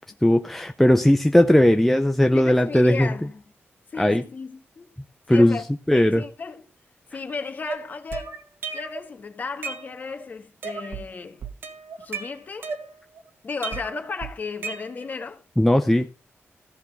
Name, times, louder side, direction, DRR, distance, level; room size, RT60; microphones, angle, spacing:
voice 1, 0.2-3.1 4.0-4.2 5.3-5.6 5.9-6.2 15.6-16.1, left 1 dB, 5° left, 0.7 m, -18 dB
voice 2, 2.3-3.4 3.9-4.9 5.3-6.6 7.1-8.4 8.7-11.4 12.0-12.7 13.4-15.4, left 4 dB, 40° left, 1.5 m, -34 dB
sound 1, 7.7-9.1 9.4-10.2 10.6-11.1 11.4-13.2 13.6-15.2, right 5 dB, 55° right, 1.9 m, -35 dB
15.0 x 6.9 x 5.4 m
wide cardioid pair, 145°, 5 cm